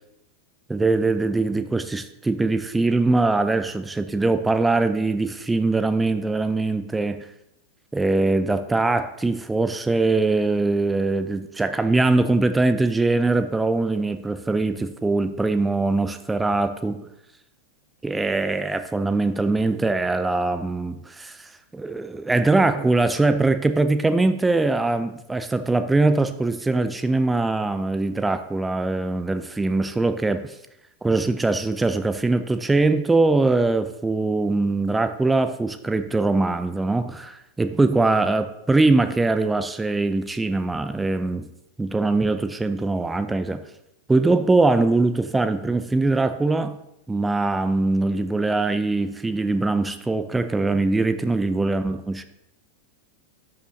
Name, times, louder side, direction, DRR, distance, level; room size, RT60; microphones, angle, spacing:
voice 1, 0.7-7.3 7.9-17.1 18.0-30.5 31.0-41.5 41.8-43.6 44.1-46.8 47.1-52.2, right 3 dB, 10° right, 11 dB, 0.5 m, -22 dB
12.0 x 5.7 x 2.7 m, 0.84 s
figure-of-eight pair, 90°, 0 cm